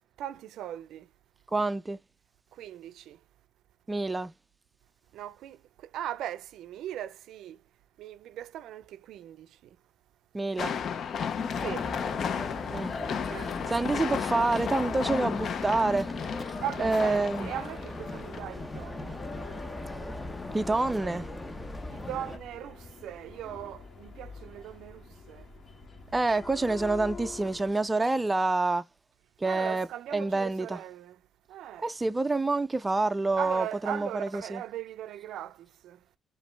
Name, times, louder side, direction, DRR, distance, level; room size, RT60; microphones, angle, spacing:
voice 1, 0.2-1.1 2.5-3.2 5.1-7.6 8.0-9.8 11.5-11.9 13.3-13.6 16.6-19.2 21.8-25.5 29.4-31.2 31.5-31.9 33.4-36.0, right 11 dB, 80° right, 0.4 m, -39 dB
voice 2, 1.5-2.0 3.9-4.3 10.3-10.7 12.7-12.9 13.7-16.1 16.8-17.5 20.5-21.3 26.1-28.8 29.4-29.9 30.1-30.8 31.8-34.6, right 3 dB, 20° right, 0.4 m, -27 dB
sound 1, 10.6-18.4, left 7 dB, 60° left, 0.5 m, -33 dB
sound 2, 11.5-22.4, left 2 dB, 20° left, 0.8 m, -39 dB
sound 3, 17.9-27.7, left 4 dB, 45° left, 1.6 m, -46 dB
5.1 x 2.6 x 3.3 m
cardioid pair, 90°, 0 cm